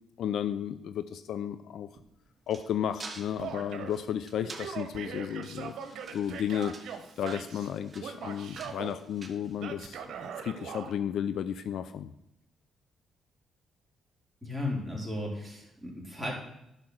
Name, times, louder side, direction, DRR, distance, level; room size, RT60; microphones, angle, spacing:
voice 1, 0.2-1.9 2.5-5.7 6.1-10.0 10.4-12.1, left 9 dB, 70° left, 12 dB, 0.5 m, -33 dB
sound 1, 1.9-10.1, right 3 dB, 30° right, 1.5 m, -49 dB
Male speech man speaking / Yell, 3.4-4.0 4.4-7.7 8.0-9.0 9.6-10.9, right 7 dB, 70° right, 1.4 m, -41 dB
voice 2, 14.4-16.3, left 1 dB, ahead, -3 dB, 4.3 m, -35 dB
10.5 x 5.8 x 6.4 m, 0.82 s
cardioid pair, 90°, 0 cm